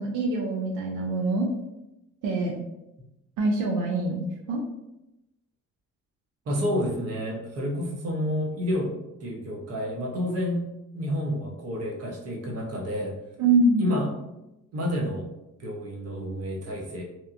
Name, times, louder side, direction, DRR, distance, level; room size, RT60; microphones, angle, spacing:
voice 1, 0.0-1.5 2.2-2.5 3.4-4.6 13.4-13.9, right 2 dB, 90° right, 0 dB, 0.5 m, -24 dB
voice 2, 6.5-10.7 10.9-13.2 13.8-14.2 14.7-15.3 15.6-17.0, equal, 55° right, 0 dB, 0.8 m, -29 dB
2.9 x 2.2 x 2.4 m, 0.90 s
cardioid pair, 90°, 30 cm